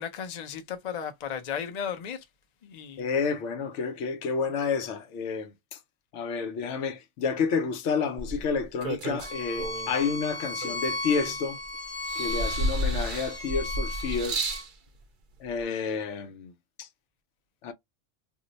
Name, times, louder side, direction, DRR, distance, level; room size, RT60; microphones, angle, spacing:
voice 1, 0.0-2.2 2.6-3.1, left 8 dB, 45° left, 0.6 m, -35 dB
voice 2, 3.0-5.8 6.1-11.6 12.1-14.6 15.4-16.5 16.8-16.9 17.6-17.7, left 5 dB, 80° left, 0.9 m, -30 dB
sound 1, 8.2-10.0 10.6-11.6 12.1-14.7 15.6-15.7, right 1 dB, 55° right, 0.6 m, -32 dB
Bowed string instrument, 9.2-14.6, left 2 dB, 30° left, 1.0 m, -36 dB
2.6 x 2.1 x 3.9 m
omnidirectional pair, 1.2 m